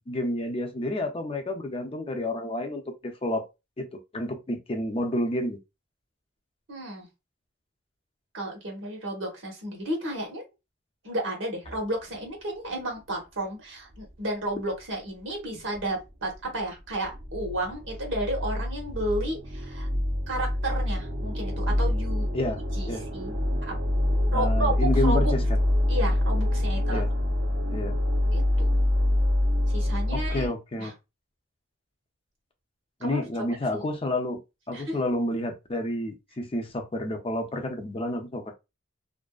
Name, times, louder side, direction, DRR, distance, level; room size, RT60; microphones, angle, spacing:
voice 1, 0.0-3.5 3.8-3.9 4.1-5.6 22.3-22.6 22.9-23.0 24.3-25.4 26.9-27.1 27.7-28.0 30.1-30.9 33.0-34.4 34.7-38.5, left 1 dB, 30° left, 0.5 m, -30 dB
voice 2, 6.7-7.1 8.3-10.4 11.0-19.9 20.3-22.3 22.7-23.7 24.3-24.7 25.0-25.3 25.9-27.0 28.3-28.7 29.7-30.5 30.8-30.9 33.0-33.3 33.7-33.8 34.7-35.0, right 1 dB, 80° right, 1.1 m, -32 dB
sound 1, 11.6-11.8 13.9-14.0 15.7-15.8 16.3-16.4 16.9-30.5, left 1 dB, 50° right, 0.6 m, -26 dB
2.5 x 2.4 x 2.3 m
head